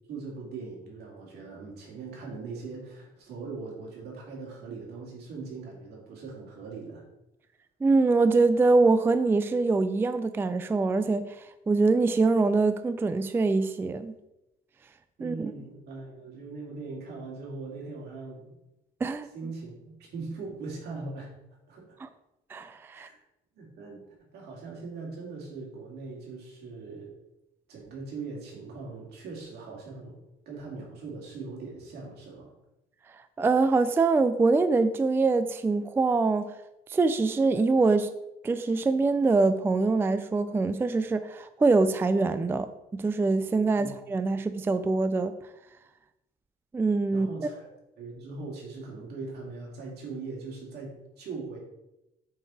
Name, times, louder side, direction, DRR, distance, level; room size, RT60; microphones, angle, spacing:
voice 1, 0.1-7.0 15.2-18.6 19.3-21.3 21.7-22.0 22.9-23.2 23.6-24.1 24.3-27.1 27.7-30.2 30.5-32.5 43.8-44.0 47.1-47.7 48.0-51.6, right 4 dB, 75° right, -2 dB, 2.5 m, -40 dB
voice 2, 7.8-14.1 15.2-15.5 19.0-19.3 22.0-22.1 22.5-23.1 33.4-36.4 36.9-38.1 38.4-45.4 46.7-47.3, right 3 dB, 15° right, 11 dB, 0.3 m, -24 dB
6.4 x 4.7 x 4.2 m, 0.93 s
cardioid pair, 110°, 17 cm